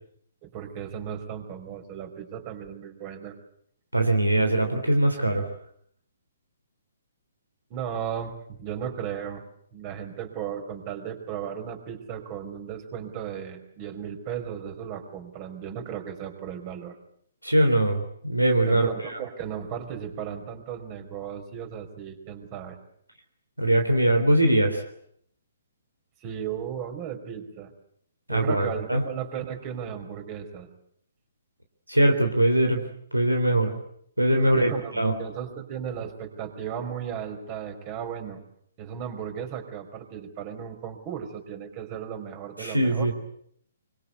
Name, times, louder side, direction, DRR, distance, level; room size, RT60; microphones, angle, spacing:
voice 1, 0.4-3.3 7.7-9.4 9.7-17.0 18.6-22.8 26.2-27.7 28.3-30.7 34.4-38.4 38.8-43.1, right 8 dB, 30° right, 6 dB, 4.8 m, -35 dB
voice 2, 3.9-5.5 17.4-18.9 23.6-24.8 28.3-29.0 31.9-32.8 33.1-33.7 34.2-35.1 42.6-43.1, right 1 dB, 85° right, 5 dB, 3.6 m, -22 dB
25.5 x 25.0 x 8.3 m, 0.68 s
figure-of-eight pair, 125°, 0 cm